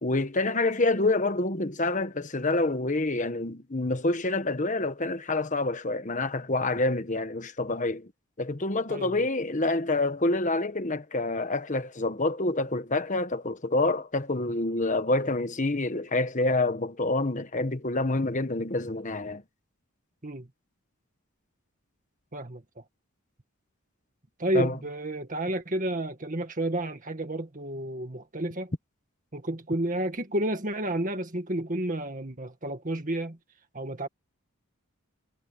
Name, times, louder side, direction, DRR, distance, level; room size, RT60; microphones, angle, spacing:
voice 1, 0.0-8.1 8.4-19.4 24.5-24.8, left 2 dB, 35° left, 1.2 m, -27 dB
voice 2, 8.9-9.3 20.2-20.5 22.3-22.6 24.4-28.7 29.3-33.4 33.7-34.1, right 1 dB, 35° right, 1.9 m, -31 dB
head